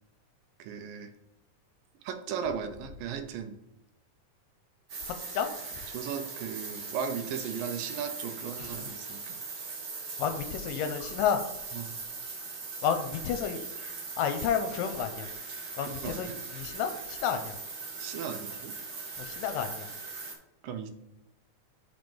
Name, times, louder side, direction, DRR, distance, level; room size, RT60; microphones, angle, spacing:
voice 1, 0.6-1.1 2.0-3.6 5.9-9.4 11.7-11.9 15.9-16.4 18.0-18.7 20.6-20.9, right 7 dB, 85° right, 8 dB, 2.5 m, -36 dB
sound 1, 4.9-20.3, right 4 dB, 65° right, 1.0 m, -40 dB
voice 2, 8.6-8.9 10.2-11.4 12.8-13.6 14.2-15.3 15.8-17.6 19.2-19.9, left 8 dB, 85° left, 7 dB, 2.3 m, -31 dB
5.8 x 5.3 x 5.4 m, 0.92 s
omnidirectional pair, 3.9 m